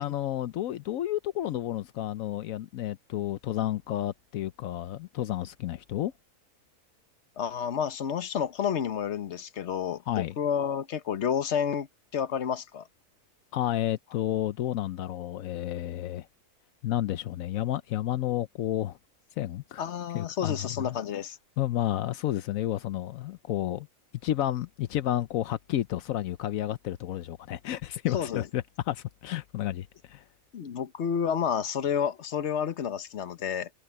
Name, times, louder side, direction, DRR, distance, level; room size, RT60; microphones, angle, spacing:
voice 1, 0.0-6.1 10.1-10.3 13.5-16.3 16.8-19.0 19.4-19.8 20.1-21.0 21.6-23.9 24.2-30.2, left 13 dB, 80° left, 1.1 m, -31 dB
voice 2, 7.4-11.9 12.1-12.8 19.8-21.4 28.1-28.4 30.5-33.7, left 8 dB, 60° left, 1.3 m, -30 dB
omnidirectional pair, 1.4 m